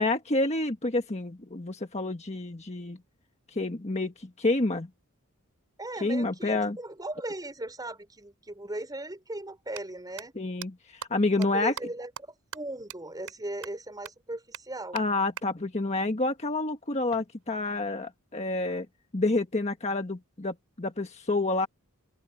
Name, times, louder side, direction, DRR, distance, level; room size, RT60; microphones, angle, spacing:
voice 1, 0.0-3.0 3.5-4.9 6.0-6.8 10.3-10.7 11.1-11.7 14.9-18.9 19.1-21.7, left 2 dB, 30° left, 1.5 m, -28 dB
voice 2, 5.8-10.3 11.4-15.0, right 1 dB, 20° right, 4.9 m, -38 dB
sound 1, 8.5-8.6 9.6-9.8 10.2-10.3 10.6-10.7 11.0-11.1 11.4-11.5 11.8-11.9 12.2-12.3 12.5-12.6 12.9-13.0 13.3-13.4 13.6-13.7 14.0-14.1 14.5-14.6 15.0-15.1 15.4-15.5 17.1-18.1, right 7 dB, 80° right, 4.7 m, -41 dB
open air
head